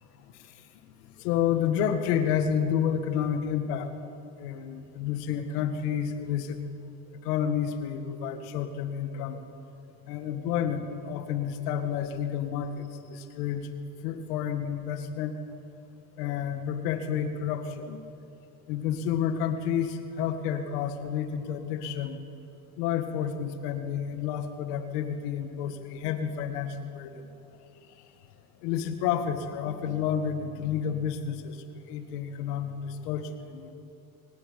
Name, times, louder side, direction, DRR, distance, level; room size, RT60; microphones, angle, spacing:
voice 1, 0.3-6.6 7.2-9.5 10.1-13.7 14.0-15.4 16.2-18.0 18.7-22.3 22.8-27.3 27.9-28.0 28.6-33.7, left 8 dB, 90° left, 8 dB, 1.9 m, -30 dB
22.0 x 17.5 x 9.1 m, 2.7 s
supercardioid pair, 90°, 45 cm